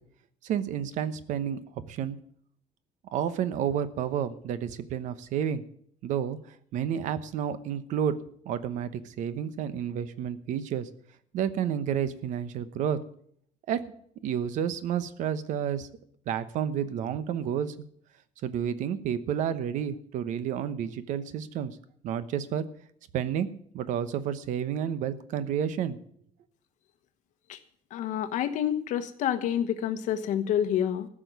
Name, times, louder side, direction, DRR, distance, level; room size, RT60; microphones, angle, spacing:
voice 1, 0.4-1.6 1.9-2.2 3.1-5.6 6.0-6.4 6.7-8.2 8.4-10.9 11.3-13.0 13.7-13.9 14.2-15.9 16.3-17.7 18.4-21.8 22.0-22.7 23.1-23.5 23.7-26.0, right 9 dB, 65° right, 13 dB, 1.0 m, -30 dB
voice 2, 27.9-31.1, left 10 dB, 65° left, 9 dB, 1.2 m, -28 dB
15.0 x 6.2 x 9.4 m, 0.65 s
cardioid pair, 170°, 14 cm